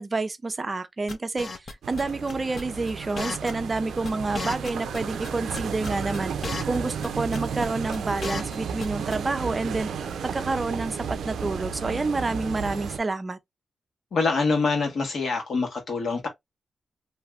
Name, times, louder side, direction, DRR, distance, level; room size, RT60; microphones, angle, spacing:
voice 1, 0.0-6.3 6.6-9.9 10.3-11.0 11.2-13.4, right 3 dB, 30° right, 0.5 m, -28 dB
sound 1, 1.1-2.0 2.3-2.6 2.9-3.0 3.2-3.8 4.0-4.1 4.3-5.3 5.5-6.8 7.0-7.1 7.3-7.7 7.9-8.9 9.1-9.2, left 3 dB, 45° left, 0.6 m, -33 dB
sound 2, 1.8-13.0, right 6 dB, 90° right, 0.4 m, -33 dB
voice 2, 14.1-16.3, left 4 dB, 65° left, 1.3 m, -25 dB
3.2 x 2.6 x 2.4 m
cardioid pair, 95°, 0 cm